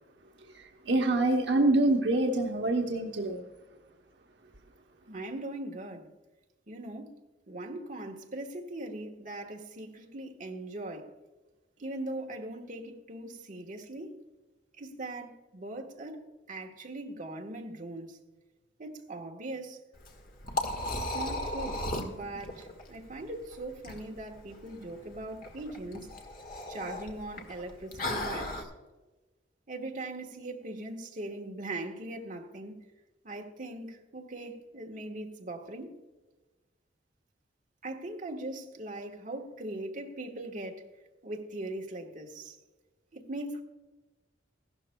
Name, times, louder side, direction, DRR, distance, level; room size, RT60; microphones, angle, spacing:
voice 1, 0.5-3.4, right 2 dB, 70° right, 0.9 m, -26 dB
voice 2, 5.1-6.1 6.7-7.2 7.5-11.1 11.8-14.2 14.8-18.2 18.8-19.8 20.4-20.6 21.1-26.1 26.7-28.7 29.7-32.8 33.2-36.0 37.8-40.9 41.2-42.6 43.1-43.6, right 2 dB, 45° right, 1.4 m, -40 dB
Liquid, 19.9-28.6, left 1 dB, 50° left, 1.6 m, -37 dB
15.5 x 12.5 x 2.2 m
head